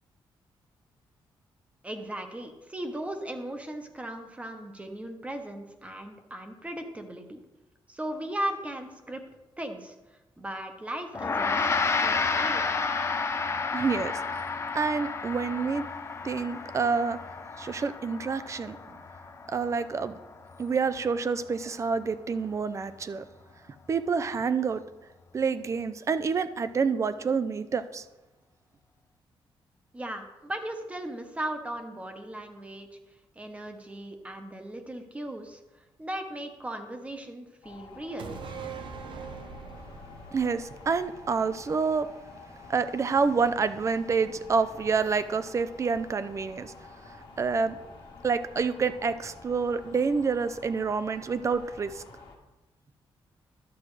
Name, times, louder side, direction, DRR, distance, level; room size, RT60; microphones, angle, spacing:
voice 1, 1.8-7.4 7.9-9.2 9.6-9.9 10.4-12.6 29.9-33.0 33.4-35.6 36.0-38.3, right 1 dB, 15° right, 6 dB, 1.0 m, -37 dB
Gong, 11.1-20.7, left 4 dB, 30° left, 0.6 m, -31 dB
voice 2, 13.7-15.9 16.2-17.2 17.6-19.0 19.5-20.2 20.6-23.2 23.9-24.8 25.3-28.0 40.3-42.1 42.7-46.7 47.0-47.8 48.2-52.0, right 5 dB, 35° right, 12 dB, 0.5 m, -28 dB
sound 1, 37.6-52.4, left 4 dB, 65° left, 1.6 m, -49 dB
sound 2, 38.2-41.8 42.1-42.2, right 5 dB, 65° right, 0.9 m, -42 dB
11.5 x 7.5 x 3.3 m, 1.0 s
cardioid pair, 125°, 9 cm